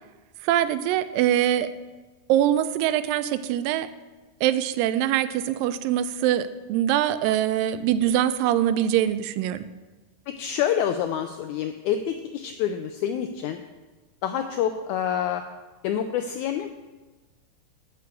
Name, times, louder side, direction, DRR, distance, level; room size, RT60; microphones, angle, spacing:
voice 1, 0.4-1.7 2.3-3.9 4.4-9.7, right 11 dB, 90° right, 13 dB, 2.3 m, -23 dB
voice 2, 10.3-13.6 14.2-15.4 15.8-16.7, left 9 dB, 85° left, 7 dB, 1.7 m, -27 dB
8.3 x 5.8 x 7.7 m, 1.2 s
omnidirectional pair, 3.9 m